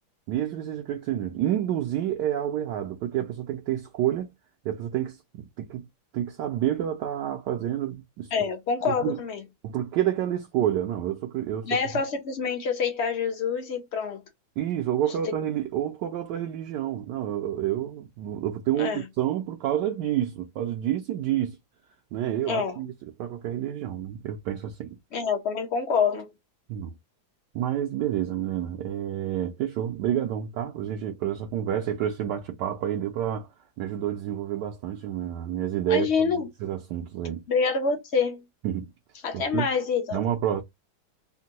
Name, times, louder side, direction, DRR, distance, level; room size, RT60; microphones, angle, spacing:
voice 1, 0.3-4.3 4.6-5.9 6.1-8.3 8.8-9.2 9.6-11.8 14.6-21.6 22.1-22.9 23.2-25.0 26.7-26.9 27.5-33.5 33.8-36.3 36.6-37.4 38.6-38.9 39.3-39.7 40.1-40.6, right 11 dB, 75° right, 1.1 m, -29 dB
voice 2, 8.3-9.4 11.6-14.2 18.8-19.0 22.5-22.8 25.1-26.3 35.9-36.5 37.5-38.4 39.2-40.2, left 5 dB, 50° left, 0.8 m, -26 dB
3.5 x 2.2 x 2.7 m
omnidirectional pair, 2.1 m